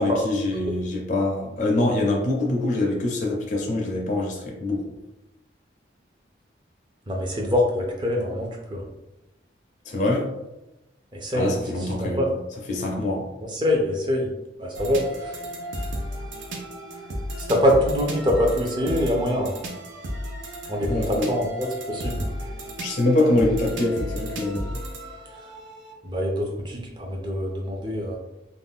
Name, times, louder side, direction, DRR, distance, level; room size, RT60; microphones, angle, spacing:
voice 1, 0.0-4.8 9.9-10.3 11.3-12.4 12.7-13.3 20.9-21.3 22.8-24.8, left 2 dB, 40° left, -1 dB, 0.4 m, -24 dB
voice 2, 7.1-8.8 11.1-11.5 12.0-12.3 13.5-14.3 14.6-15.4 17.5-19.5 20.7-22.3 26.0-28.2, left 1 dB, 25° right, 0 dB, 0.5 m, -24 dB
sound 1, 14.7-25.9, equal, 85° right, 0.6 m, -33 dB
2.5 x 2.2 x 3.5 m, 0.95 s
head